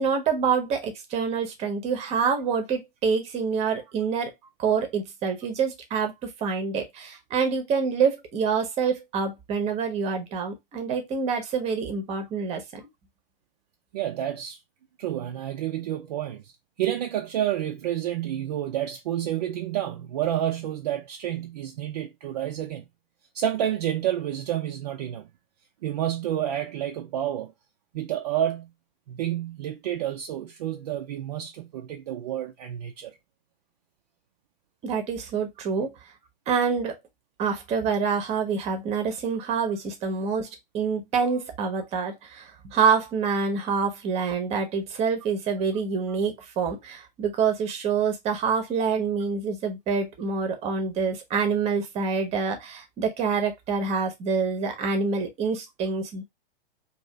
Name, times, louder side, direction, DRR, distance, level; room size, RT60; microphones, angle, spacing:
voice 1, 0.0-4.3 4.6-12.8 34.8-35.9 36.5-37.0 37.4-56.2, right 5 dB, 20° right, 0.8 m, -26 dB
voice 2, 13.9-14.6 15.0-16.5 16.8-22.8 23.3-25.3 25.8-27.5 27.9-28.7 29.1-33.2, right 11 dB, 45° right, 0.4 m, -29 dB
2.7 x 2.4 x 3.2 m
figure-of-eight pair, 110°, 29 cm